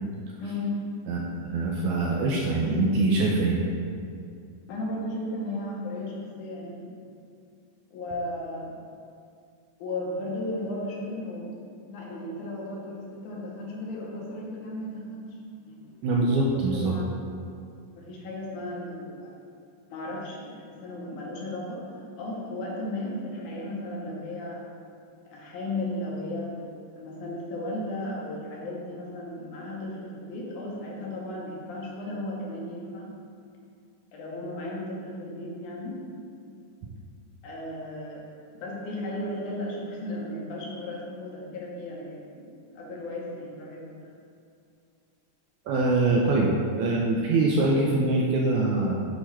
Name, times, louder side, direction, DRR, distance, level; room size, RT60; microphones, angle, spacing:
voice 1, 0.4-0.8 4.7-6.9 7.9-8.7 9.8-11.5 11.9-15.3 15.7-16.0 16.7-17.1 18.0-19.3 19.9-21.9 22.2-24.6 25.3-26.7 27.0-33.1 34.1-36.0 37.4-38.2 38.5-42.5 42.8-44.1, left 1 dB, 75° left, -3 dB, 2.3 m, -35 dB
voice 2, 1.1-3.6 16.0-17.0 45.7-49.1, right 2 dB, 80° right, -2 dB, 1.7 m, -24 dB
8.3 x 2.9 x 4.4 m, 2.3 s
omnidirectional pair, 3.8 m